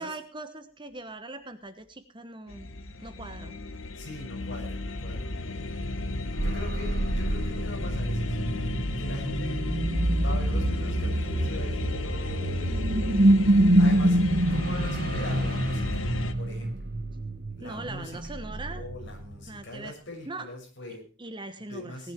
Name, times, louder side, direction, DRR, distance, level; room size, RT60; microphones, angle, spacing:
voice 1, 0.0-2.7 3.0-3.6 17.6-18.8 19.5-20.0 20.3-20.5 21.2-22.1, right 2 dB, 25° right, 9 dB, 1.2 m, -40 dB
sound 1, 2.5-16.3, left 2 dB, 75° left, 1.2 m, -33 dB
voice 2, 4.0-5.6 6.4-8.4 9.0-9.6 10.1-13.2 13.5-16.0 16.4-16.9 17.6-21.1 21.7-22.1, left 2 dB, 60° left, 1 dB, 6.3 m, -42 dB
sound 2, 6.1-19.6, right 1 dB, 50° right, 1.2 m, -26 dB
18.5 x 11.0 x 4.5 m, 0.37 s
head